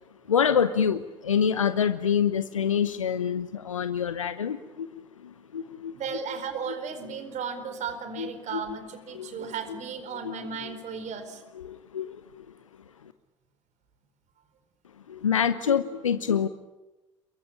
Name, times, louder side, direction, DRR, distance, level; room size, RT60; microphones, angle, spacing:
voice 1, 0.3-4.9 5.2-6.0 8.2-8.6 9.1-9.3 10.2-10.3 10.6-10.7 11.6-12.4 15.1-16.5, left 7 dB, 85° left, 12 dB, 0.9 m, -26 dB
voice 2, 5.9-11.4, right 6 dB, 45° right, 9 dB, 4.4 m, -35 dB
28.0 x 23.0 x 8.7 m, 1.0 s
figure-of-eight pair, 60°, 16 cm